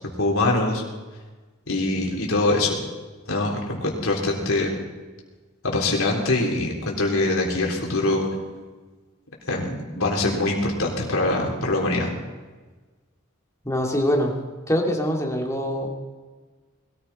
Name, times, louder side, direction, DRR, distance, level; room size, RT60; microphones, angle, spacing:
voice 1, 0.2-0.8 1.7-2.8 3.3-4.7 5.6-8.3 9.5-12.1, left 2 dB, 80° left, -1 dB, 3.6 m, -23 dB
voice 2, 13.6-14.3 14.7-16.0, equal, 15° left, 0 dB, 2.3 m, -23 dB
21.0 x 14.5 x 4.2 m, 1.3 s
head